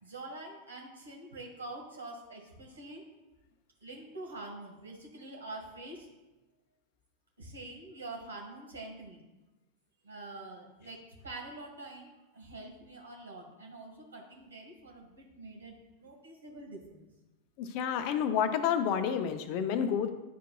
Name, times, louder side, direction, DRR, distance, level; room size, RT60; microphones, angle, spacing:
voice 1, 0.0-3.1 3.8-6.1 7.4-9.2 10.0-17.1, right 2 dB, 70° right, 0 dB, 1.7 m, -46 dB
voice 2, 17.6-20.1, left 8 dB, 45° left, 9 dB, 0.6 m, -29 dB
11.0 x 4.6 x 2.3 m, 1.1 s
figure-of-eight pair, 90°, 0 cm